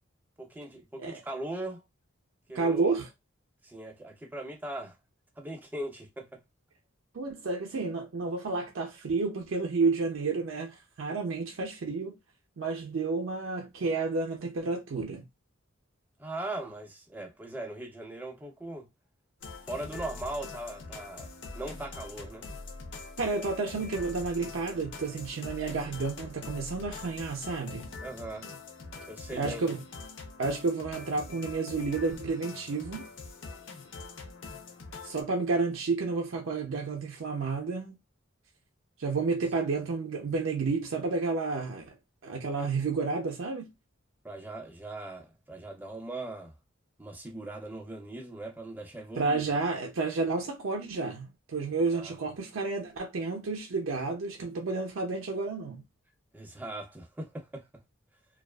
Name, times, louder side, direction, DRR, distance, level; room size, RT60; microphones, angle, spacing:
voice 1, 0.4-1.8 2.5-2.9 3.6-5.0 5.4-6.4 16.2-18.9 19.7-21.3 21.5-22.5 28.0-28.5 29.1-29.7 44.2-46.5 47.0-49.6 51.9-52.1 56.3-57.8, right 1 dB, 10° right, 0.4 m, -39 dB
voice 2, 2.5-3.1 7.1-12.2 12.6-15.3 23.2-27.9 29.3-29.8 30.4-33.1 35.0-38.0 39.0-41.9 42.2-43.7 49.2-55.8, right 4 dB, 70° right, 0.5 m, -31 dB
sound 1, 19.4-35.2, left 3 dB, 65° left, 0.5 m, -44 dB
2.3 x 2.3 x 2.2 m
head